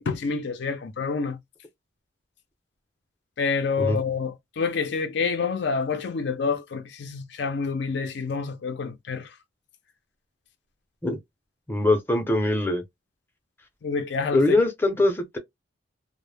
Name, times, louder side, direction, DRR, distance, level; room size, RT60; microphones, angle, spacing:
voice 1, 0.0-1.4 3.4-9.3 13.8-14.6, left 5 dB, 60° left, 0.4 m, -28 dB
voice 2, 11.7-12.8 14.3-15.4, left 2 dB, 10° left, 0.6 m, -22 dB
2.0 x 2.0 x 3.3 m
head